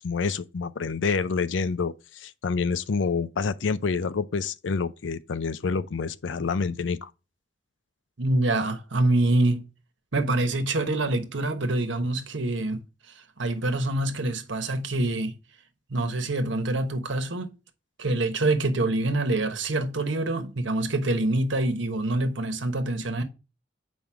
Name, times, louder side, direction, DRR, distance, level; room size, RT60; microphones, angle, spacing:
voice 1, 0.0-7.1, left 4 dB, 80° left, 0.5 m, -28 dB
voice 2, 8.2-9.6 10.1-12.8 13.4-15.4 15.9-17.5 18.0-23.2, right 2 dB, 80° right, 1.2 m, -25 dB
7.7 x 5.2 x 3.5 m
head